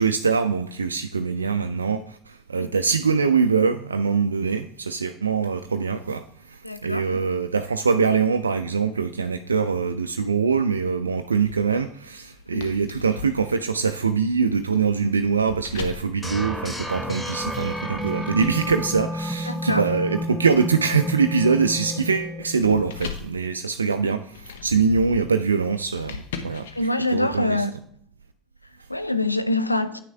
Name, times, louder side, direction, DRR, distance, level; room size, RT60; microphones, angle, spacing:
voice 1, 0.0-26.7 27.1-27.6, right 5 dB, 80° right, 0.3 m, -23 dB
voice 2, 6.6-7.2 12.5-12.7 19.5-19.9 26.7-27.7 28.6-30.0, left 2 dB, 90° left, 0.5 m, -25 dB
sound 1, 11.4-17.3 17.8-27.4, left 7 dB, 65° left, 0.9 m, -41 dB
sound 2, 16.2-23.2, equal, 10° left, 1.1 m, -31 dB
9.1 x 6.2 x 3.5 m
figure-of-eight pair, 70°, 0 cm